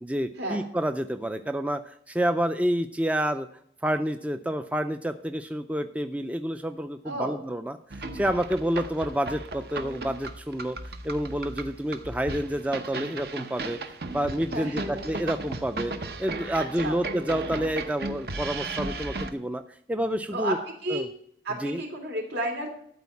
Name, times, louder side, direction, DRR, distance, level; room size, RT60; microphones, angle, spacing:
voice 1, 0.0-3.5 3.8-10.8 11.0-13.8 14.1-15.9 16.2-19.6 19.9-20.6 20.9-21.1 21.6-21.8, equal, 10° right, 8 dB, 0.4 m, -29 dB
voice 2, 7.0-7.4 14.5-15.1 16.6-17.0 20.3-20.5 20.8-21.0 21.4-22.7, right 1 dB, 80° right, 1 dB, 3.3 m, -32 dB
sound 1, 7.9-19.3, right 3 dB, 60° right, 0.9 m, -36 dB
12.5 x 4.6 x 8.3 m, 0.64 s
head